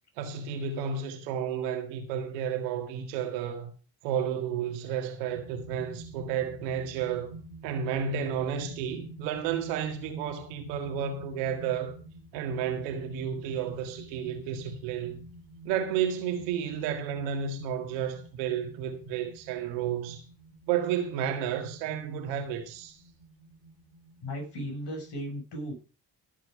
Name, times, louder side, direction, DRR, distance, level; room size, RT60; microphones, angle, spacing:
voice 1, 0.2-3.7 4.0-7.4 7.6-11.9 12.3-15.2 15.7-20.2 20.7-23.0, right 8 dB, 85° right, 2.0 m, -32 dB
sound 1, 5.3-25.1, right 2 dB, 90° left, 4.2 m, -49 dB
voice 2, 24.2-25.7, equal, 55° left, 6.1 m, -36 dB
15.5 x 7.7 x 4.9 m
hypercardioid pair, 40°, 48 cm